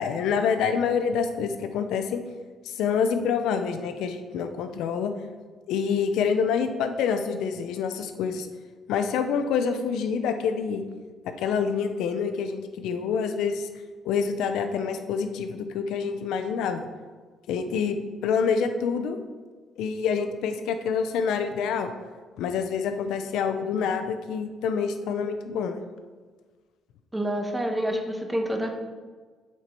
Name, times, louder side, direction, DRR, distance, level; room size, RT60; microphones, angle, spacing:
voice 1, 0.0-2.2 2.6-5.1 5.7-8.5 8.9-10.8 11.4-13.7 14.0-16.9 17.5-19.2 19.8-21.9 22.4-25.8, left 6 dB, 85° left, 8 dB, 0.6 m, -27 dB
voice 2, 27.1-28.7, equal, 10° right, 3 dB, 1.1 m, -27 dB
7.2 x 4.5 x 5.2 m, 1.5 s
cardioid pair, 90°, 0 cm